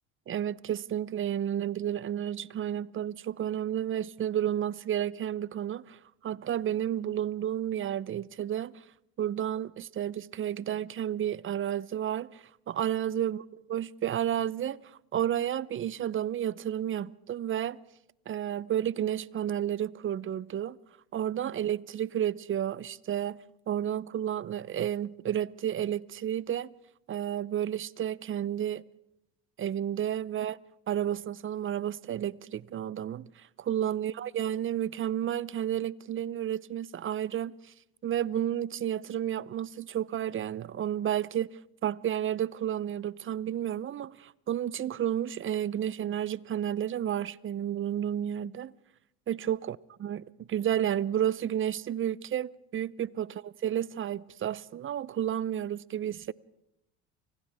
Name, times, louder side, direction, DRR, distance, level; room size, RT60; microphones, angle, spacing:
voice 1, 0.3-8.7 9.2-13.4 13.7-14.8 15.1-17.8 18.3-20.8 21.1-23.4 23.7-26.7 27.1-28.8 29.6-30.6 30.9-37.5 38.0-41.5 41.8-48.7 49.3-49.8 50.0-53.3 53.6-56.3, right 10 dB, 40° right, 0.7 m, -31 dB
29.5 x 26.0 x 3.6 m
hypercardioid pair, 70°, 33 cm